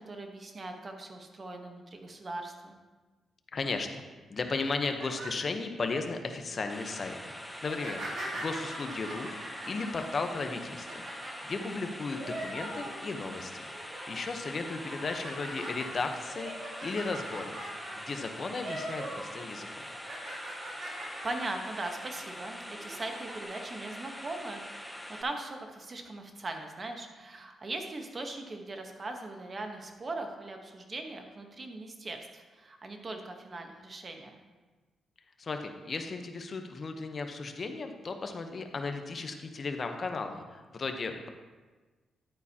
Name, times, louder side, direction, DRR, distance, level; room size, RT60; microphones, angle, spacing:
voice 1, 0.0-2.7 11.6-11.9 20.9-34.4, right 2 dB, 35° right, 4 dB, 1.1 m, -40 dB
voice 2, 3.5-4.0 4.3-7.3 7.6-9.3 9.7-11.1 11.4-13.6 14.1-16.5 16.8-17.6 18.0-19.9 35.4-41.3, left 4 dB, 40° left, 6 dB, 0.9 m, -35 dB
sound 1, 4.6-6.0 6.5-6.8 7.6-13.3 13.7-14.2 14.6-19.3 19.6-21.5 21.9-22.1 22.8-23.3, right 1 dB, 65° right, 2.9 m, -42 dB
sound 2, 6.7-25.2, equal, ahead, 0.8 m, -44 dB
11.0 x 8.9 x 2.9 m, 1.3 s
cardioid pair, 105°, 0 cm